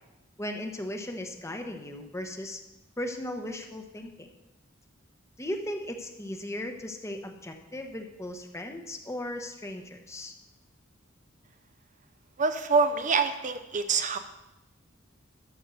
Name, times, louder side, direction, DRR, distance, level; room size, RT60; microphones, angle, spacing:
voice 1, 0.4-2.6 3.0-4.3 5.4-10.3, left 1 dB, 15° left, 5 dB, 1.0 m, -37 dB
voice 2, 12.4-14.2, right 4 dB, 40° right, 9 dB, 0.6 m, -25 dB
13.0 x 5.3 x 6.8 m, 0.98 s
head